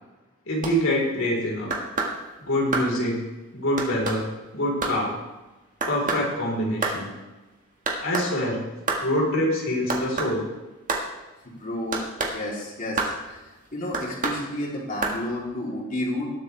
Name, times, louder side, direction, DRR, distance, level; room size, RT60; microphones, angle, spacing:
voice 1, 0.5-1.7 2.4-3.2 3.5-5.1 5.9-7.1 8.0-8.6 9.0-10.4, equal, 75° left, -2 dB, 4.0 m, -25 dB
sound 1, 0.6-0.7 1.7-2.1 2.7-2.9 3.8-4.2 4.8-5.0 5.8-6.3 6.8-7.0 7.9-8.3 8.9-9.0 9.9-10.3 10.9-11.1 11.9-12.3 13.0-13.1 13.9-14.4 15.0-15.2, right 3 dB, 40° right, 1.8 m, -27 dB
voice 2, 11.4-12.1 12.3-13.4 13.7-16.3, left 1 dB, 40° left, -3 dB, 3.3 m, -31 dB
19.5 x 8.1 x 3.4 m, 1.1 s
head